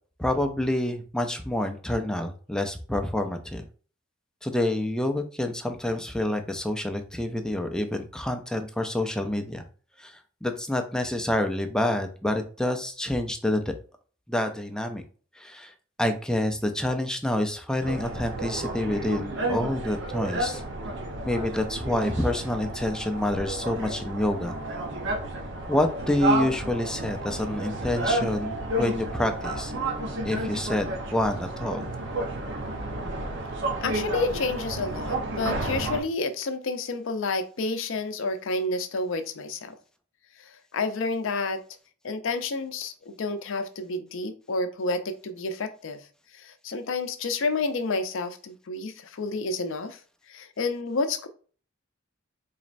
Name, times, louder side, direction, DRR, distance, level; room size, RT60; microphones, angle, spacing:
voice 1, 0.2-3.6 4.4-9.6 10.0-13.7 14.3-15.0 15.4-20.6 21.3-24.6 25.7-29.7 30.2-30.9 31.1-31.9, left 1 dB, 5° left, 6 dB, 0.3 m, -28 dB
sound 1, 17.8-36.0, right 2 dB, 60° right, 0.8 m, -31 dB
voice 2, 33.8-39.8 40.4-41.6 42.0-46.1 46.3-50.0 50.3-51.3, left 3 dB, 70° left, 9 dB, 0.5 m, -30 dB
4.0 x 3.0 x 2.5 m, 0.41 s
head